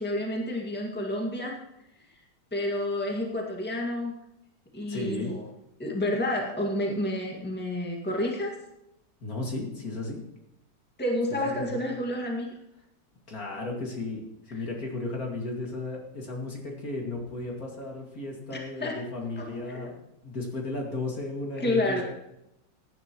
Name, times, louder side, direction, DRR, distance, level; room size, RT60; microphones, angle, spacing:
voice 1, 0.0-1.6 2.5-4.1 4.7-5.4 5.8-8.5 11.0-12.5 18.5-19.1 19.4-19.9 21.6-22.0, left 1 dB, 5° left, -1 dB, 1.9 m, -30 dB
voice 2, 4.9-5.3 9.2-10.2 11.4-11.7 13.3-14.2 14.5-22.0, left 2 dB, 50° left, 0 dB, 2.7 m, -34 dB
17.0 x 10.5 x 3.1 m, 0.85 s
omnidirectional pair, 1.9 m